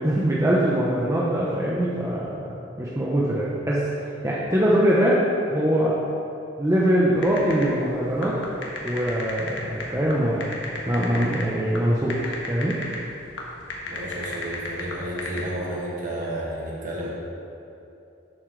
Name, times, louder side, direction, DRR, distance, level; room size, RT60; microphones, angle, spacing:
voice 1, 0.0-2.4 2.8-3.9 4.2-5.2 5.5-6.0 6.6-8.4 8.8-10.5 10.9-12.2 12.5-12.8, right 1 dB, 15° right, -6 dB, 0.8 m, -22 dB
sound 1, 7.2-15.4, left 2 dB, 70° left, 1.4 m, -34 dB
voice 2, 13.9-17.1, right 1 dB, 45° right, -5 dB, 2.0 m, -31 dB
11.5 x 7.4 x 3.3 m, 2.8 s
head